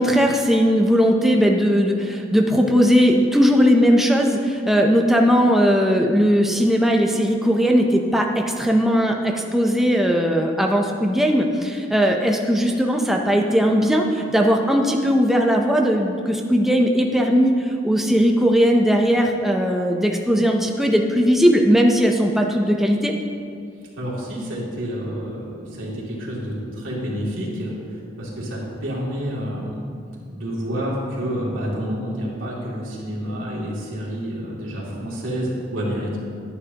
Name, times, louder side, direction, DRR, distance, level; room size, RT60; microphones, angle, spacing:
voice 1, 0.0-23.1, equal, ahead, 1 dB, 0.5 m, -18 dB
voice 2, 23.9-29.9 30.3-36.2, equal, 85° right, -5 dB, 2.6 m, -29 dB
11.5 x 10.0 x 2.8 m, 2.4 s
head